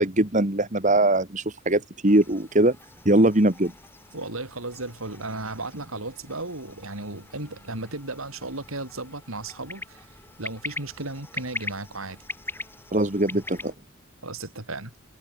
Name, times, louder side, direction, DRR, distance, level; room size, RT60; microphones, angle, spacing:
voice 1, 0.0-2.8 3.1-3.7 12.9-13.7, right 1 dB, 35° right, 2.1 m, -21 dB
sound 1, 2.1-13.7, left 2 dB, 10° left, 6.3 m, -42 dB
voice 2, 4.1-10.1 10.4-12.2 13.3-13.4 14.2-14.9, right 2 dB, 80° right, 4.4 m, -35 dB
head